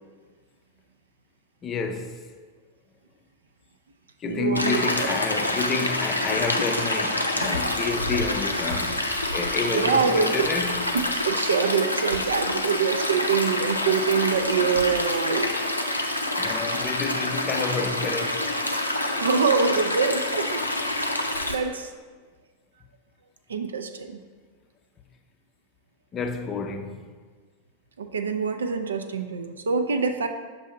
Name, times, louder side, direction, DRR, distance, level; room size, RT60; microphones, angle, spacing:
voice 1, 1.6-2.2 4.2-10.9 16.4-18.5 26.1-27.0, left 5 dB, 25° left, 0.5 m, -30 dB
voice 2, 4.3-5.1 9.7-10.5 11.2-15.5 19.2-21.0 21.5-21.9 23.5-24.2 28.0-30.3, right 5 dB, 70° right, 0.4 m, -25 dB
Stream, 4.5-21.5, left 1 dB, 85° left, 0.5 m, -27 dB
7.1 x 2.7 x 5.5 m
figure-of-eight pair, 90°, 0 cm